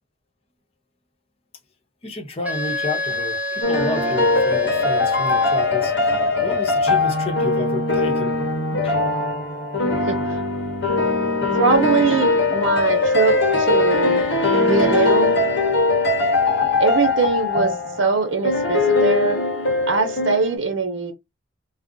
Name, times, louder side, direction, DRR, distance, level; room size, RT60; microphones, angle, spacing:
voice 1, 2.0-6.2 6.4-8.4 8.7-9.0, left 2 dB, 30° left, 0.8 m, -30 dB
Wind instrument woodwind instrument, 2.4-6.0, equal, 10° right, 0.7 m, -29 dB
sound 1, 3.6-20.6, left 3 dB, 65° left, 0.9 m, -20 dB
voice 2, 10.1-10.4 11.5-14.3 14.6-15.3 16.8-19.4 19.9-21.1, right 4 dB, 70° right, 0.8 m, -22 dB
2.4 x 2.0 x 3.7 m
head